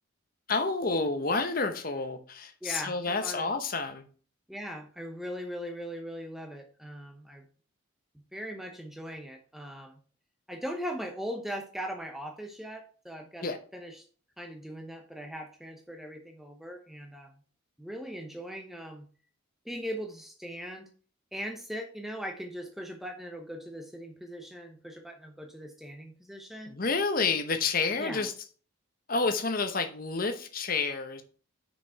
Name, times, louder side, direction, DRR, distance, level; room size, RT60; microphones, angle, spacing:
voice 1, 0.5-4.1 13.4-13.6 26.6-28.3 29.1-31.2, left 4 dB, 45° left, 0.9 m, -29 dB
voice 2, 2.6-3.5 4.5-7.5 8.3-10.0 10.5-14.0 14.4-17.3 17.8-19.1 19.6-20.9 21.3-26.8 28.0-28.3, equal, ahead, 0.9 m, -40 dB
6.1 x 5.2 x 5.6 m
head